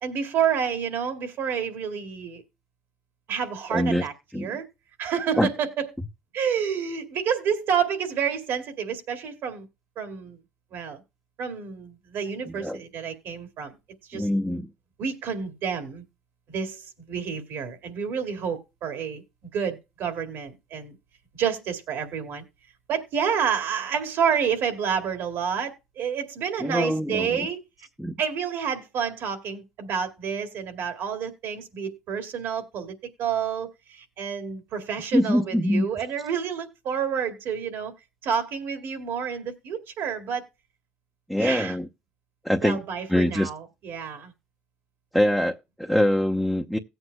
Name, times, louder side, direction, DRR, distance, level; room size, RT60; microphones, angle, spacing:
voice 1, 0.0-2.4 3.3-4.7 5.0-5.9 6.3-9.7 10.0-10.4 10.7-11.0 11.4-13.8 14.1-14.3 15.0-16.0 16.5-19.2 19.5-20.9 21.4-22.4 22.9-27.6 28.2-32.9 33.2-37.9 38.2-40.5 41.4-41.7 42.6-44.3, right 7 dB, 65° right, 2.1 m, -29 dB
voice 2, 3.7-4.1 4.3-4.6 5.4-5.5 12.5-12.8 14.1-14.7 26.6-27.5 28.0-28.1 35.1-35.9 41.3-41.9 42.4-42.8 43.1-43.5 45.1-46.8, equal, ahead, 0.9 m, -24 dB
17.0 x 8.0 x 2.2 m
supercardioid pair, 75°, 4 cm